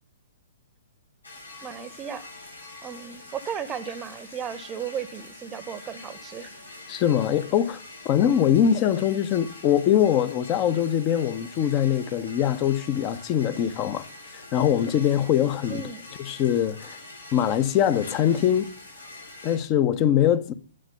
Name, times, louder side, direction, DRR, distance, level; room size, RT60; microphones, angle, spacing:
sound 1, 1.2-19.6, left 2 dB, 85° left, 6.2 m, -44 dB
voice 1, 1.6-2.2 2.8-6.5 15.7-16.1, right 8 dB, 20° right, 1.0 m, -35 dB
voice 2, 6.9-7.8 8.0-14.1 14.3-15.8 16.2-17.0 17.3-18.7 19.4-20.5, left 10 dB, 30° left, 1.0 m, -22 dB
11.5 x 9.3 x 6.6 m
figure-of-eight pair, 115°, 0 cm